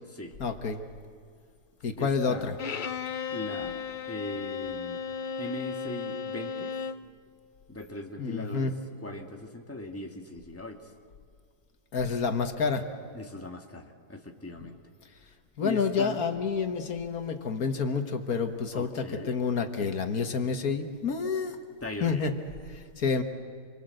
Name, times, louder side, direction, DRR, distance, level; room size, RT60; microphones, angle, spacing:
voice 1, 0.4-0.8 1.8-2.5 8.2-8.7 11.9-12.9 15.6-21.6 22.0-22.3 22.7-23.2, left 5 dB, 70° left, 7 dB, 1.8 m, -29 dB
voice 2, 2.0-2.5 3.3-3.8 4.1-5.1 5.4-6.8 7.7-8.7 9.0-10.9 13.1-14.8 15.6-16.2 18.7-19.3 21.8-22.2, left 1 dB, 10° left, 3 dB, 1.8 m, -39 dB
Bowed string instrument, 2.6-7.1, left 6 dB, 45° left, 0.6 m, -35 dB
27.5 x 24.0 x 7.8 m, 2.3 s
omnidirectional pair, 1.6 m